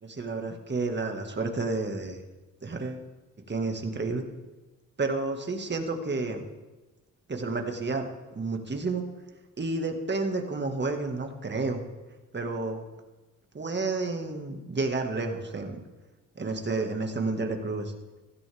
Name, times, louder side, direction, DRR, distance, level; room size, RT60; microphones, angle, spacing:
voice 1, 0.0-2.2 2.6-3.0 3.5-4.2 5.0-6.4 7.3-8.0 8.3-9.0 9.6-11.8 12.3-12.9 13.5-15.8 16.4-17.9, right 3 dB, 30° right, 4 dB, 1.9 m, -30 dB
15.5 x 14.5 x 3.6 m, 1.2 s
cardioid pair, 70°, 34 cm